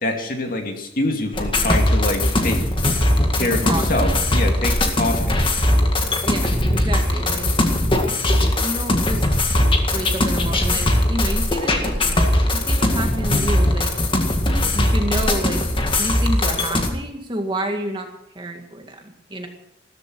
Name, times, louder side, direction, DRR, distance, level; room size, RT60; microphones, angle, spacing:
voice 1, 0.0-2.6 3.3-5.5, left 2 dB, 50° left, 3 dB, 2.5 m, -25 dB
sound 1, 1.3-16.9, left 1 dB, 25° left, 1.9 m, -20 dB
voice 2, 3.4-4.1 6.2-7.5 7.9-8.2 8.6-9.3 9.9-12.1 12.5-13.9 14.7-18.1 18.4-19.5, right 1 dB, 25° right, 3 dB, 2.0 m, -29 dB
15.0 x 13.5 x 6.3 m, 0.82 s
head